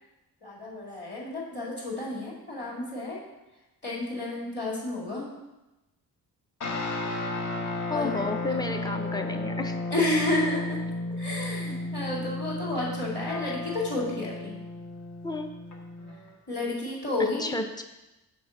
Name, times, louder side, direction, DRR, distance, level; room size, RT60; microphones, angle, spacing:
voice 1, 0.4-3.2 3.8-5.2 7.9-8.2 8.8-8.9 9.9-10.8 11.2-14.6 16.5-17.5, left 2 dB, 30° left, -5 dB, 2.3 m, -31 dB
sound 1, 6.6-16.3, left 2 dB, 50° left, 1.1 m, -34 dB
voice 2, 7.9-10.1 15.2-15.5 17.4-17.8, left 2 dB, 10° left, 6 dB, 0.5 m, -31 dB
6.1 x 4.3 x 6.3 m, 1.0 s
wide cardioid pair, 150°, 38 cm